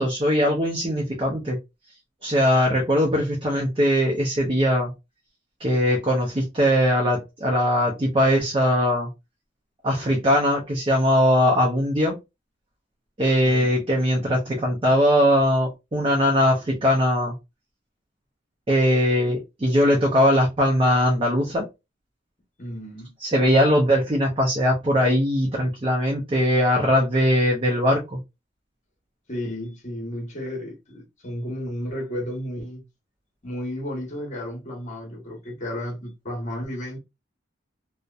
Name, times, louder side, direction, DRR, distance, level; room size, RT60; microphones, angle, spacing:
voice 1, 0.0-1.6 2.2-4.9 5.6-9.1 9.8-12.1 13.2-17.3 18.7-21.7 23.2-28.2, equal, 30° right, 0.6 m, -20 dB
voice 2, 13.4-13.8 22.6-23.1 29.3-32.8 33.4-37.0, left 1 dB, 40° left, 0.9 m, -33 dB
2.8 x 2.1 x 2.3 m
head